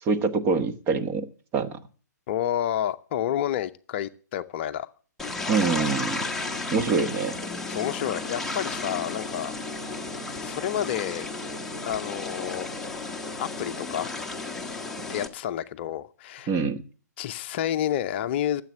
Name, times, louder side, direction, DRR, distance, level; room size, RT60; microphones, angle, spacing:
voice 1, 0.0-1.3 1.5-1.8 5.5-6.3 6.7-7.4 16.5-16.8, right 4 dB, 25° right, 8 dB, 1.2 m, -25 dB
voice 2, 2.3-4.9 7.7-10.0 10.3-11.3 11.8-12.7 13.4-14.2 15.1-16.5 17.2-18.6, left 11 dB, 40° left, 10 dB, 0.6 m, -30 dB
sound 1, 5.2-15.3, left 3 dB, 5° left, 1.3 m, -33 dB
13.5 x 7.6 x 7.4 m, 0.41 s
figure-of-eight pair, 130°, 10 cm